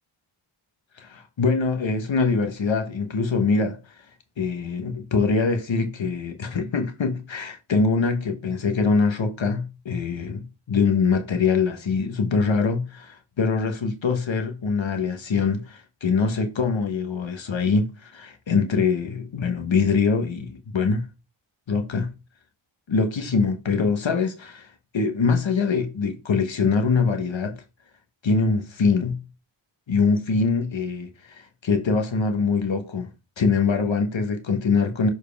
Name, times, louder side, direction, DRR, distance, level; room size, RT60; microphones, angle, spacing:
voice 1, 1.0-3.9 4.4-21.1 21.7-22.1 22.9-27.6 28.2-29.2 29.9-33.1 33.4-35.1, left 4 dB, 70° left, 1.1 m, -23 dB
6.8 x 4.5 x 3.3 m
wide cardioid pair, 80°, 47 cm